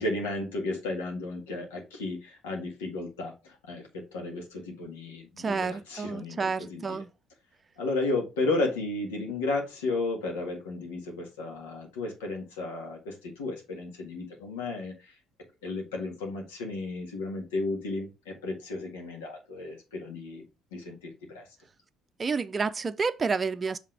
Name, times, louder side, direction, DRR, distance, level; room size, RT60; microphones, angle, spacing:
voice 1, 0.0-7.0 7.8-15.1 15.6-20.4 20.7-21.4, left 2 dB, 90° left, 1.7 m, -33 dB
voice 2, 5.4-7.1 22.2-23.8, right 4 dB, 35° right, 0.5 m, -29 dB
5.8 x 3.6 x 4.8 m
hypercardioid pair, 60°, 0 cm